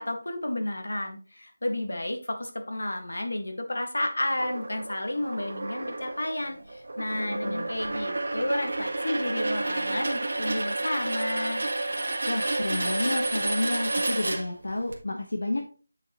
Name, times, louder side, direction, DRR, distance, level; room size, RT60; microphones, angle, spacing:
voice 1, 0.0-11.6, left 1 dB, 90° left, 5 dB, 1.9 m, -31 dB
sound 1, 4.4-14.9, right 2 dB, 55° right, 1.7 m, -30 dB
voice 2, 7.1-7.7 12.3-15.6, left 2 dB, 70° left, 2 dB, 1.3 m, -30 dB
8.7 x 6.1 x 3.1 m, 0.37 s
figure-of-eight pair, 180°, 0 cm